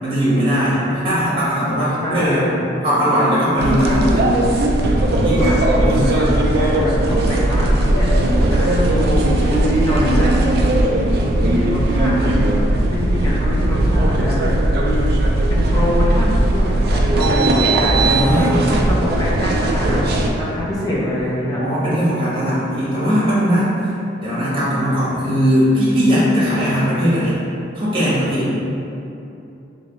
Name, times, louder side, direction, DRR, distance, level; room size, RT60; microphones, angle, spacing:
voice 1, 0.0-2.4 2.8-4.3 5.2-5.5 5.8-6.2 18.0-18.7 21.4-23.7 24.2-27.4 27.7-28.6, equal, 25° right, -10 dB, 1.1 m, -19 dB
voice 2, 0.9-1.7 2.0-2.6 5.2-10.4 11.3-12.3 12.9-15.1 15.5-18.3 18.6-20.0 20.4-21.6, equal, 20° left, -6 dB, 0.5 m, -25 dB
sound 1, 3.6-20.3, right 1 dB, 50° right, 0.3 m, -17 dB
3.2 x 2.8 x 2.9 m, 2.8 s
head